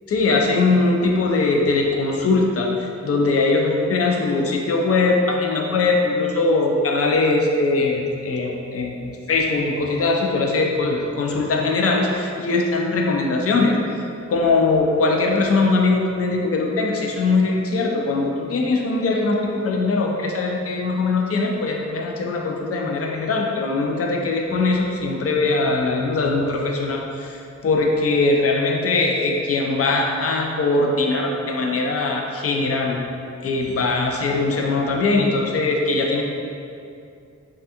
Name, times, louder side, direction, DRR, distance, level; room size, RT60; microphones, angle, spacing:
voice 1, 0.1-13.7 14.3-33.1 33.4-36.2, left 3 dB, 50° left, 0 dB, 0.4 m, -21 dB
3.2 x 2.4 x 2.8 m, 2.5 s
wide cardioid pair, 100°, 29 cm